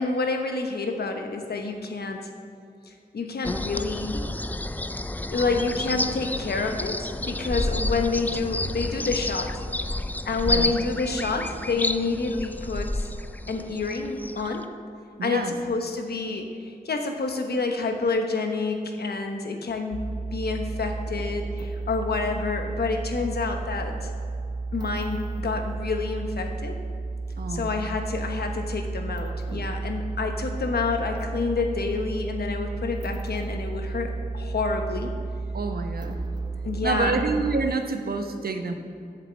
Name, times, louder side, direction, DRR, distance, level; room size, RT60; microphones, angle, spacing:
voice 1, 0.0-2.3 2.9-4.3 5.3-9.5 10.3-13.1 13.5-14.7 15.2-20.0 20.3-24.1 24.7-26.8 27.5-35.1 36.1-36.2 36.6-37.2, left 3 dB, 85° left, 4 dB, 1.1 m, -28 dB
sound 1, 3.4-14.6, left 1 dB, 10° left, 0.3 m, -30 dB
voice 2, 15.2-15.6 27.4-27.7 35.5-36.2 36.8-38.8, right 3 dB, 70° right, 6 dB, 0.9 m, -27 dB
sound 2, 19.9-37.7, right 3 dB, 25° right, 0.6 m, -32 dB
7.8 x 7.3 x 7.6 m, 2.4 s
wide cardioid pair, 100°, 16 cm